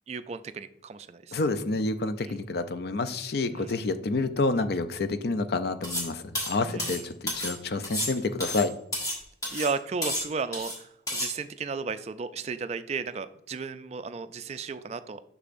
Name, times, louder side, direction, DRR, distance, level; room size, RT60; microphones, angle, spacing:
voice 1, 0.1-1.3 2.3-2.4 3.5-3.8 6.6-7.0 9.5-15.3, right 5 dB, 35° right, 12 dB, 0.3 m, -34 dB
voice 2, 1.3-8.7, left 3 dB, 55° left, 11 dB, 0.5 m, -28 dB
sound 1, 5.8-6.1 6.3-7.6 7.8-9.2 9.4-9.7 10.0-10.8 11.1-11.3, left 1 dB, 20° left, 1.3 m, -31 dB
6.6 x 6.1 x 2.5 m, 0.74 s
head